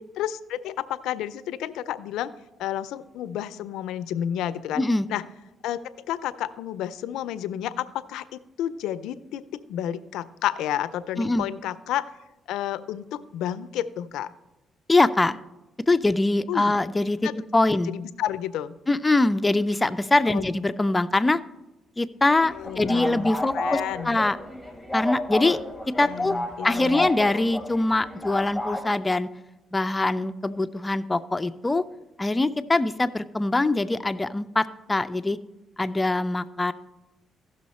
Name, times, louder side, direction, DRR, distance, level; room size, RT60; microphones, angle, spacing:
voice 1, 0.2-2.3 2.6-4.8 5.1-5.2 5.6-5.8 6.1-9.4 9.7-12.1 12.5-14.3 16.5-16.7 17.2-17.3 17.9-18.7 20.3-20.5 22.6-24.2 26.0-27.1, left 11 dB, 90° left, 14 dB, 0.4 m, -31 dB
voice 2, 14.9-15.4 15.9-17.9 18.9-21.4 22.0-24.4 24.9-25.6 26.0-26.4 26.6-29.3 29.7-31.8 32.2-35.4 35.8-36.7, left 2 dB, 20° left, 13 dB, 0.4 m, -23 dB
sound 1, 22.4-28.8, left 1 dB, 5° right, 1.8 m, -32 dB
15.5 x 6.2 x 4.2 m, 1.0 s
cardioid pair, 90°, 0 cm